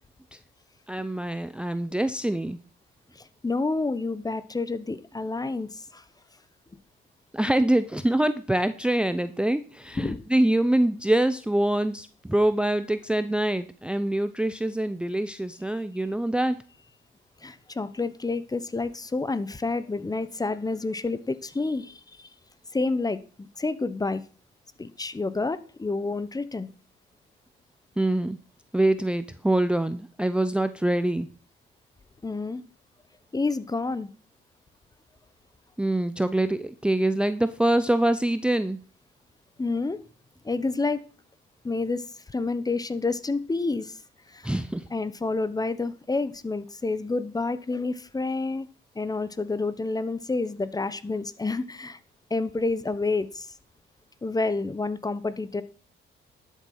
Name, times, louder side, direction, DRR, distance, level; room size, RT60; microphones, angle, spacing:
voice 1, 0.9-2.6 7.3-16.6 28.0-28.4 28.7-31.3 35.8-38.8 44.4-44.9, right 1 dB, 5° right, 11 dB, 0.6 m, -25 dB
voice 2, 3.1-6.0 10.0-10.2 17.4-22.3 22.7-24.2 24.8-26.7 32.2-32.6 33.3-34.1 39.6-40.0 40.4-41.0 41.6-44.0 44.3-44.5 44.9-48.7 48.9-52.0 52.3-53.5 54.2-55.6, left 3 dB, 20° left, 15 dB, 1.0 m, -29 dB
12.0 x 7.4 x 5.6 m, 0.39 s
cardioid pair, 90°, 20 cm